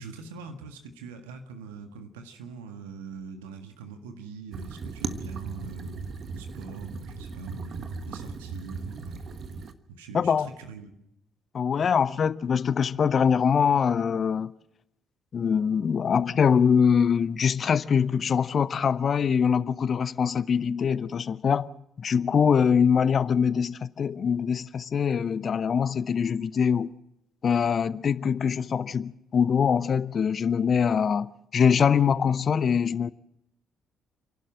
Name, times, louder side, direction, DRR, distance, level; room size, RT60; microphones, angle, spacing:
voice 1, 0.0-9.2 10.0-10.9, right 4 dB, 80° right, 1.8 m, -43 dB
sound 1, 4.5-9.7, right 4 dB, 50° right, 1.4 m, -37 dB
voice 2, 10.1-10.5 11.5-14.5 15.3-21.7 22.0-26.9 27.4-33.1, left 7 dB, 45° left, 0.7 m, -23 dB
30.0 x 12.0 x 7.6 m
figure-of-eight pair, 45°, 0 cm